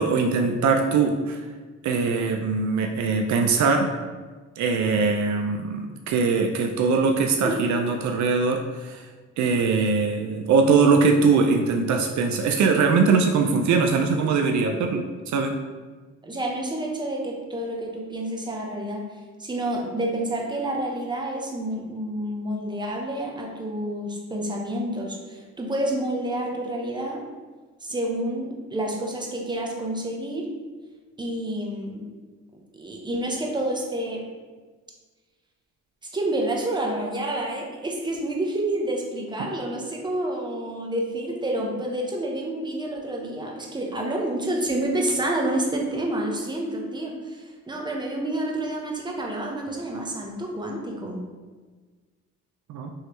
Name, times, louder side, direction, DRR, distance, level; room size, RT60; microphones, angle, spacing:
voice 1, 0.0-1.4 1.8-3.9 4.6-9.0 9.4-15.0 15.3-15.6 52.7-52.9, right 4 dB, 70° right, 4 dB, 0.5 m, -21 dB
voice 2, 16.2-19.1 19.4-27.2 27.8-30.5 31.2-32.1 32.7-34.2 36.1-51.2, right 1 dB, 15° right, 0 dB, 0.8 m, -29 dB
4.6 x 3.2 x 3.0 m, 1.4 s
cardioid pair, 90°, 30 cm